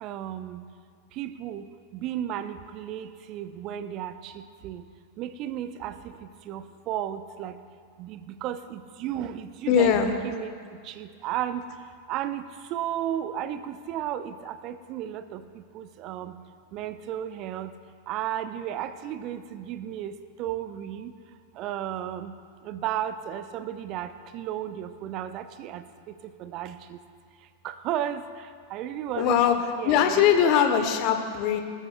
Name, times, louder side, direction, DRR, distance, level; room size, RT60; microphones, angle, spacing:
voice 1, 0.0-0.6 1.2-4.8 5.2-7.5 8.0-10.5 10.8-11.7 12.1-16.3 16.7-17.7 18.1-21.1 21.6-22.3 22.6-27.0 27.6-29.4 29.8-30.7, right 11 dB, 40° right, 11 dB, 0.6 m, -34 dB
voice 2, 9.7-10.1 29.1-29.5 29.8-31.6, left 8 dB, 40° left, 6 dB, 1.2 m, -21 dB
18.5 x 13.5 x 2.4 m, 2.1 s
figure-of-eight pair, 90°, 0 cm